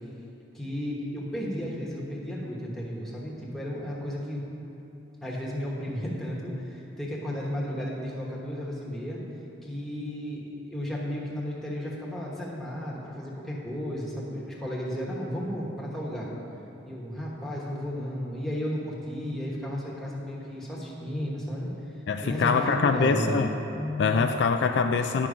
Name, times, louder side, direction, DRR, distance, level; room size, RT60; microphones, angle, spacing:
voice 1, 0.5-4.4 5.2-9.2 9.6-16.3 16.8-21.7 22.2-23.4 23.8-24.2, equal, ahead, -5 dB, 1.2 m, -33 dB
voice 2, 22.1-23.5 24.0-25.3, left 5 dB, 60° left, 6 dB, 0.3 m, -24 dB
9.7 x 6.1 x 5.0 m, 3.0 s
head